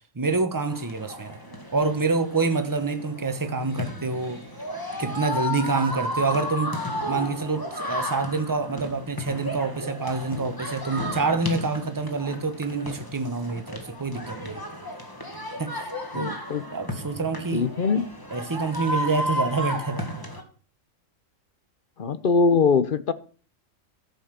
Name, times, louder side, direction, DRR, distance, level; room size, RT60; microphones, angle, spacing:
voice 1, 0.1-1.4 1.7-4.4 5.0-14.6 15.6-16.4 16.7-17.7 18.3-20.1, right 3 dB, 15° right, 1.0 m, -27 dB
sound 1, 0.7-20.4, left 1 dB, 15° left, 1.8 m, -33 dB
voice 2, 16.1-16.6 17.5-18.1 22.0-23.1, left 4 dB, 45° left, 0.8 m, -22 dB
13.5 x 5.5 x 7.5 m
omnidirectional pair, 1.4 m